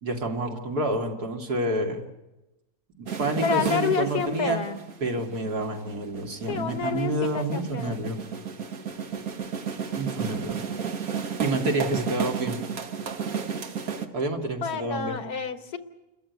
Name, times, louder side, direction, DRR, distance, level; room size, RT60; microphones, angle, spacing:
voice 1, 0.0-2.0 3.0-4.6 5.0-8.2 10.0-10.6 11.4-12.6 14.1-15.2, right 1 dB, 85° right, 2 dB, 2.9 m, -28 dB
sound 1, 3.1-14.1, right 7 dB, 70° right, 1.8 m, -33 dB
voice 2, 3.4-4.8 6.5-8.0 14.6-15.8, left 5 dB, 85° left, 8 dB, 1.9 m, -29 dB
29.0 x 14.0 x 9.5 m, 1.0 s
omnidirectional pair, 1.6 m